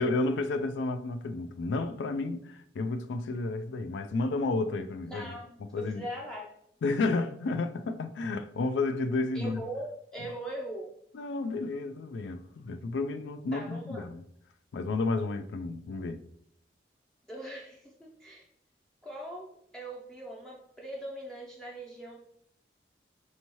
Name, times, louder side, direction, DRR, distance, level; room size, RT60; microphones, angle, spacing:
voice 1, 0.0-6.1 6.8-9.6 11.1-14.2 14.7-16.2, left 3 dB, 80° left, 0.3 m, -31 dB
voice 2, 5.1-5.5 5.7-6.5 9.3-10.9 13.5-14.0 17.3-18.4 19.0-22.2, right 1 dB, 5° left, 0.4 m, -41 dB
4.5 x 2.8 x 3.0 m
head